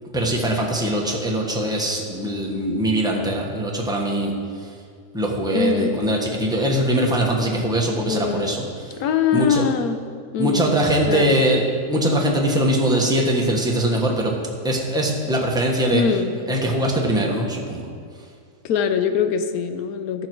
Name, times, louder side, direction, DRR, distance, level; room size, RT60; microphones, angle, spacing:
voice 1, 0.1-4.3 5.1-8.9 9.3-9.6 10.4-11.6 11.9-14.4 14.6-16.0 16.5-17.8, right 1 dB, 5° right, -1 dB, 1.2 m, -21 dB
voice 2, 5.5-5.9 8.1-8.6 9.0-10.0 10.3-10.7 11.1-11.4 15.9-16.3 18.6-20.3, left 7 dB, 85° left, 9 dB, 1.2 m, -22 dB
13.5 x 6.4 x 4.6 m, 2.1 s
omnidirectional pair, 1.6 m